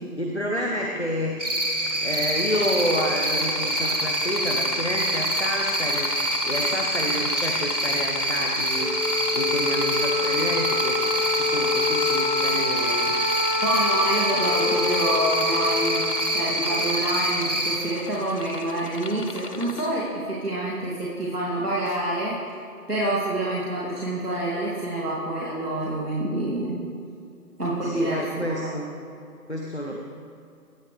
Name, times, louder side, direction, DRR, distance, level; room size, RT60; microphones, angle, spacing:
voice 1, 0.2-1.4 2.0-8.9 9.3-11.0 11.3-13.2 27.8-28.9 29.5-29.9, equal, 45° left, -1 dB, 1.2 m, -29 dB
Cricket, 1.4-17.8, right 1 dB, 50° right, 1.9 m, -26 dB
sound 1, 2.5-19.9, left 3 dB, 70° left, 1.0 m, -35 dB
Wind instrument woodwind instrument, 8.7-17.3, left 3 dB, 25° left, 3.1 m, -28 dB
voice 2, 13.6-22.4 22.9-26.8 27.6-28.7, right 1 dB, 75° right, -7 dB, 2.9 m, -27 dB
17.5 x 10.5 x 3.5 m, 2.5 s
figure-of-eight pair, 180°, 47 cm